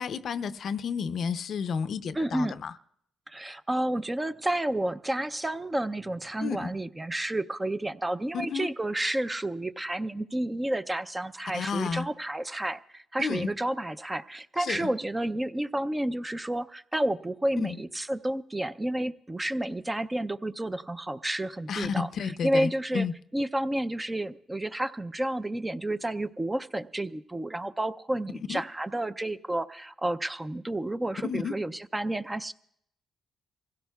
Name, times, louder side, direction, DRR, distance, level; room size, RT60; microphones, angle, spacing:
voice 1, 0.0-2.7 6.4-6.7 8.3-8.7 11.5-12.1 13.2-13.5 14.6-14.9 17.6-17.8 21.7-23.1 28.3-28.6 31.2-31.5, left 6 dB, 60° left, 0.5 m, -31 dB
voice 2, 2.2-2.6 3.3-22.1 22.4-23.0 23.3-32.5, right 1 dB, 15° right, 0.5 m, -30 dB
25.0 x 16.5 x 2.3 m
cardioid pair, 90°, 0 cm